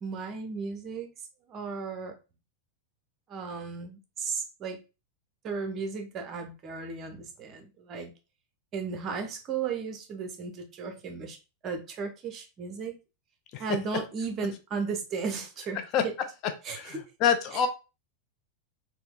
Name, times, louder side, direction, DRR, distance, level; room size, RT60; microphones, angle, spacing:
voice 1, 0.0-1.1 1.5-2.1 3.3-4.8 5.4-8.1 8.7-11.4 11.6-13.0 13.6-16.1 16.6-17.0, right 5 dB, 30° right, 6 dB, 0.7 m, -35 dB
voice 2, 16.7-17.7, left 8 dB, 40° left, 7 dB, 0.4 m, -26 dB
4.2 x 2.1 x 2.3 m, 0.29 s
figure-of-eight pair, 90°, 0 cm